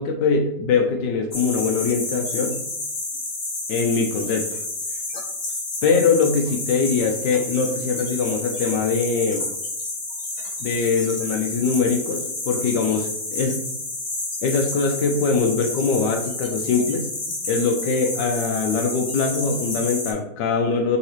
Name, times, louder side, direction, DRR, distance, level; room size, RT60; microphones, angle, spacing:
voice 1, 0.0-2.6 3.7-4.5 5.8-9.4 10.6-13.6 14.4-17.0 17.5-21.0, left 5 dB, 80° left, 3 dB, 1.2 m, -22 dB
sound 1, 1.3-20.1, left 2 dB, 50° left, 0.5 m, -30 dB
4.0 x 3.8 x 3.0 m, 0.77 s
omnidirectional pair, 1.9 m